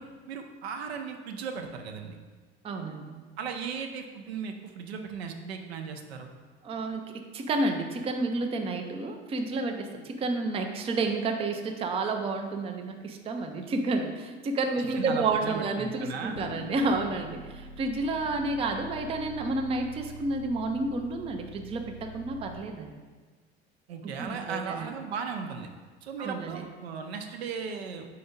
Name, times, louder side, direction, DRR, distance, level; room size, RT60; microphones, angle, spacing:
voice 1, 0.0-2.2 3.4-6.3 14.9-16.4 23.9-25.7 26.0-28.1, right 6 dB, 65° right, 4 dB, 0.7 m, -36 dB
voice 2, 2.6-3.2 6.6-22.9 24.2-24.9 26.2-26.6, right 3 dB, 15° right, 4 dB, 0.5 m, -30 dB
sound 1, 16.4-22.6, equal, 75° left, 0.7 m, -45 dB
4.7 x 4.3 x 5.1 m, 1.4 s
figure-of-eight pair, 70°, 34 cm